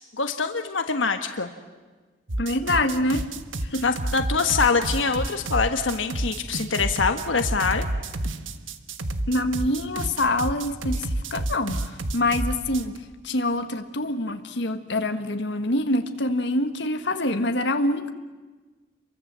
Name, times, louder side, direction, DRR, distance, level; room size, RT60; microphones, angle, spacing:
voice 1, 0.2-1.5 3.8-7.9, left 5 dB, 85° left, 7 dB, 1.4 m, -24 dB
sound 1, 2.3-13.0, right 1 dB, 90° right, 1.5 m, -29 dB
voice 2, 2.4-3.2 3.7-3.8 9.3-13.0 13.2-18.1, left 1 dB, 70° left, 7 dB, 1.6 m, -25 dB
29.0 x 23.5 x 7.6 m, 1.3 s
head